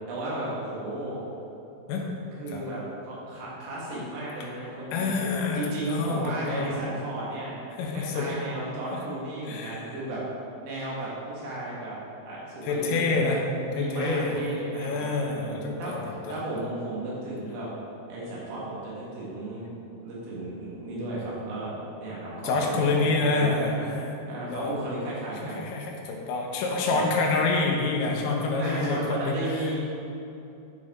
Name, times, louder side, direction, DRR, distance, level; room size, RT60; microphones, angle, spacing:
voice 1, 0.1-1.2 2.3-5.1 5.5-7.6 7.9-10.2 10.6-12.0 12.2-13.4 13.7-17.7 18.1-19.8 20.0-23.9 24.3-25.7 26.9-27.0 28.6-29.8, right 1 dB, 85° right, -6 dB, 4.5 m, -34 dB
voice 2, 4.9-6.7 7.8-8.3 8.9-9.0 9.5-10.0 12.6-13.4 13.8-14.4 14.7-16.0 16.3-16.4 22.4-24.0 24.5-24.7 25.6-29.4, left 3 dB, 85° left, 0 dB, 3.5 m, -27 dB
11.0 x 5.3 x 3.7 m, 2.8 s
omnidirectional pair, 5.7 m